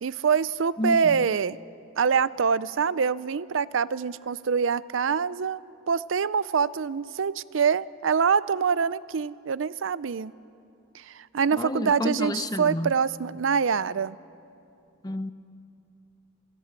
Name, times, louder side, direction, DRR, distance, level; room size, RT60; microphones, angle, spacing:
voice 1, 0.0-1.6 2.0-10.3 10.9-14.2, right 6 dB, 75° right, 0.5 m, -25 dB
voice 2, 0.8-1.2 11.5-12.9 15.0-15.3, left 1 dB, 20° left, 0.8 m, -30 dB
27.5 x 17.0 x 8.9 m
head